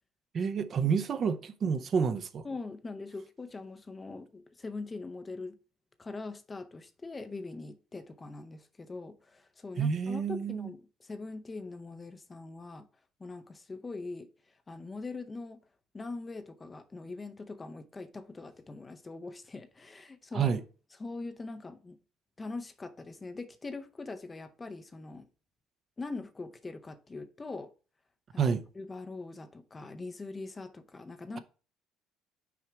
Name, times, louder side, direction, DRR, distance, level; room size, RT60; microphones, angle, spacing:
voice 1, 0.3-2.5 9.8-10.7 20.3-20.6 28.4-28.6, right 6 dB, 40° right, 0.6 m, -29 dB
voice 2, 2.4-5.6 6.0-12.8 13.2-14.3 14.7-15.6 15.9-20.5 21.0-22.0 22.4-25.3 26.0-27.7 28.8-31.4, left 3 dB, 20° left, 0.6 m, -42 dB
5.9 x 4.9 x 4.5 m
cardioid pair, 130°, 0 cm